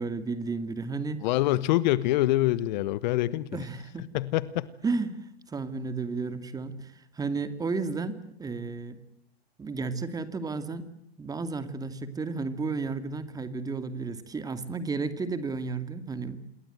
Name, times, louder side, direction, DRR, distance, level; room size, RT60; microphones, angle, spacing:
voice 1, 0.0-1.3 3.5-4.1 4.8-5.2 5.5-9.0 9.6-10.9 11.2-16.4, right 4 dB, 10° right, 12 dB, 2.4 m, -33 dB
voice 2, 1.2-3.5 4.1-4.7, left 16 dB, 45° left, 18 dB, 1.2 m, -25 dB
28.0 x 22.0 x 8.0 m, 0.74 s
hypercardioid pair, 120°, 32 cm